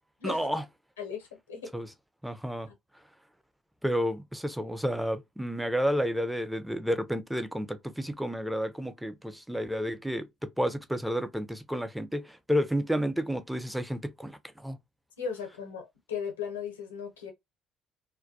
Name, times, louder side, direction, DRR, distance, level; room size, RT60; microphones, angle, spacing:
voice 1, 0.2-0.6 1.7-1.9 2.2-2.7 3.8-14.8, equal, 5° right, 0.4 m, -31 dB
voice 2, 1.0-1.7 15.2-17.3, left 6 dB, 90° left, 0.6 m, -37 dB
2.2 x 2.2 x 2.6 m
hypercardioid pair, 55°, 0 cm